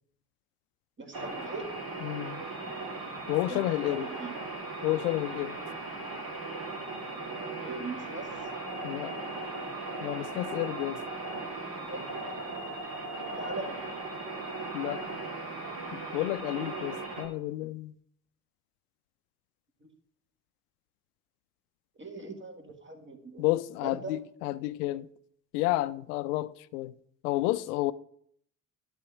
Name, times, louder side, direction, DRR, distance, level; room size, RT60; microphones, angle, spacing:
voice 1, 1.0-1.7 3.5-4.4 7.6-8.5 11.9-12.3 13.4-13.7 19.8-19.9 22.0-23.5 23.8-24.2, right 3 dB, 25° right, 1.8 m, -40 dB
sound 1, 1.1-17.3, right 3 dB, 45° right, 2.5 m, -38 dB
voice 2, 2.0-2.4 3.3-4.1 4.8-5.6 8.8-9.1 10.0-11.0 14.7-15.0 15.9-17.9 23.4-25.1 25.5-26.9 27.2-27.9, left 17 dB, 70° left, 0.5 m, -30 dB
11.0 x 4.2 x 6.1 m
figure-of-eight pair, 45°, 47 cm